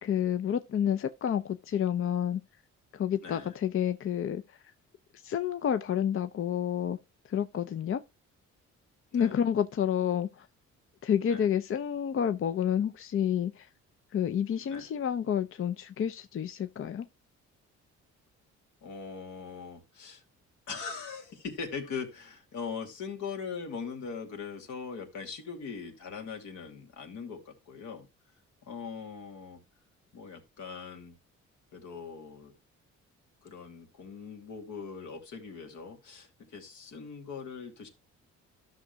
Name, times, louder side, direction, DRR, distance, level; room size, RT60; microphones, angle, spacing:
voice 1, 0.0-2.4 2.9-4.6 5.1-7.0 7.3-8.0 9.1-10.5 11.0-13.7 14.1-17.1, left 9 dB, 45° left, 0.6 m, -29 dB
voice 2, 3.2-3.5 9.1-9.4 11.3-11.4 14.7-14.9 18.8-20.2 20.7-28.1 28.6-29.6 30.1-31.2 31.7-32.5 33.4-37.9, left 5 dB, 75° left, 2.6 m, -41 dB
13.0 x 6.3 x 2.2 m
cardioid pair, 90°, 30 cm